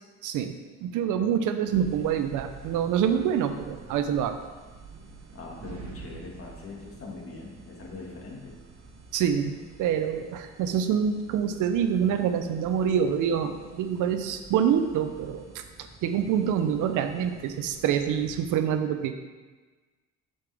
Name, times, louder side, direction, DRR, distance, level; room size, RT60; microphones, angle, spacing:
voice 1, 0.2-0.6 0.8-4.3 9.1-9.5 9.8-19.1, right 8 dB, 90° right, 8 dB, 0.6 m, -26 dB
sound 1, 1.7-18.6, right 4 dB, 60° right, 1.3 m, -48 dB
voice 2, 5.3-8.6, left 3 dB, 45° left, -1 dB, 1.9 m, -42 dB
6.8 x 6.8 x 3.4 m, 1.3 s
cardioid pair, 90°, 30 cm